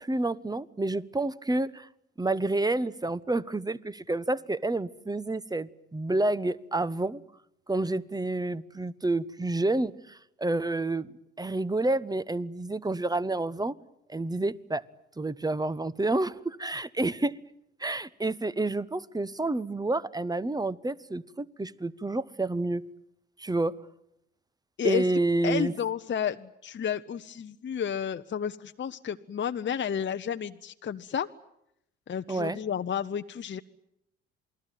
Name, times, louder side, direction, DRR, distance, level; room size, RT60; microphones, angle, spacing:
voice 1, 0.0-1.9 2.2-7.2 7.7-11.1 11.4-13.7 14.1-14.8 15.2-17.4 17.8-22.8 23.4-23.8 24.8-25.7 32.3-32.6, right 2 dB, 10° right, 1.1 m, -29 dB
voice 2, 25.4-31.3 32.1-33.6, left 8 dB, 35° left, 0.9 m, -31 dB
28.0 x 20.5 x 9.2 m
hypercardioid pair, 50°, 34 cm